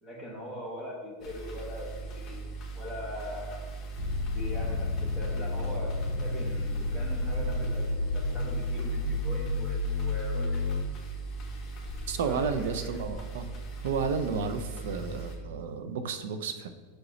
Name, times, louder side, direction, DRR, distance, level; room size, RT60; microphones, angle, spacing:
voice 1, 0.0-3.6 4.3-7.8 8.1-10.6 12.2-13.0, left 1 dB, 10° right, -2 dB, 1.1 m, -41 dB
sound 1, 1.2-15.4, right 3 dB, 25° left, 1.2 m, -40 dB
sound 2, 4.0-10.8, left 6 dB, 50° left, 0.8 m, -30 dB
voice 2, 12.1-13.5 13.8-16.7, right 5 dB, 70° right, 9 dB, 0.6 m, -32 dB
6.0 x 4.9 x 3.1 m, 1.5 s
supercardioid pair, 160°, 0 cm